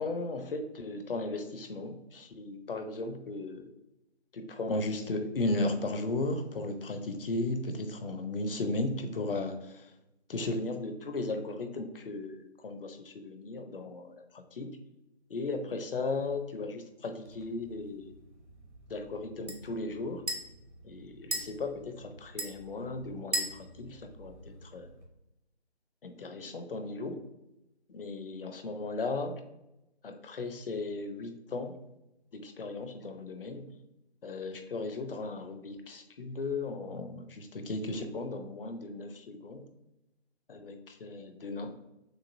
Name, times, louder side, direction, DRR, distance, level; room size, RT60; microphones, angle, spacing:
voice 1, 0.0-3.6 4.3-9.9 10.3-14.8 15.3-18.1 18.9-20.2 20.8-24.9 26.0-27.2 27.9-29.4 30.0-31.8 32.3-33.7 34.2-39.6 40.5-41.7, left 2 dB, 55° left, 6 dB, 0.7 m, -36 dB
sound 1, 17.2-25.1, right 1 dB, 80° right, 1.2 m, -41 dB
6.4 x 2.5 x 2.6 m, 0.90 s
figure-of-eight pair, 155°, 34 cm